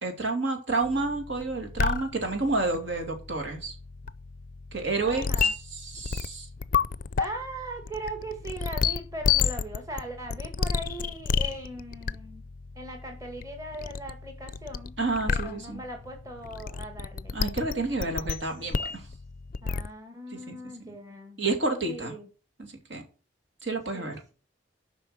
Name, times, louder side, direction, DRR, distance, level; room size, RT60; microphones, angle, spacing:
voice 1, 0.0-3.7 4.7-6.5 15.0-15.8 17.3-19.0 20.3-20.6 21.4-22.1 22.6-23.0 23.6-24.2, right 3 dB, 70° right, 2.7 m, -30 dB
sound 1, 0.8-19.9, left 6 dB, 45° left, 0.4 m, -32 dB
voice 2, 5.0-5.5 7.2-12.4 12.8-14.9 15.3-17.4 19.6-21.4 21.8-22.3 23.9-24.3, right 1 dB, 15° right, 2.0 m, -39 dB
8.3 x 5.8 x 7.8 m
head